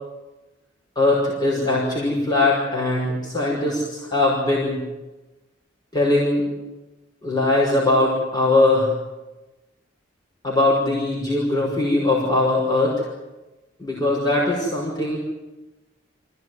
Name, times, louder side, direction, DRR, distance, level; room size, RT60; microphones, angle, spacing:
voice 1, 1.0-4.8 5.9-6.4 7.2-8.9 10.4-13.0 13.8-15.2, left 2 dB, 20° left, -3 dB, 5.6 m, -20 dB
26.0 x 16.0 x 9.6 m, 1.1 s
head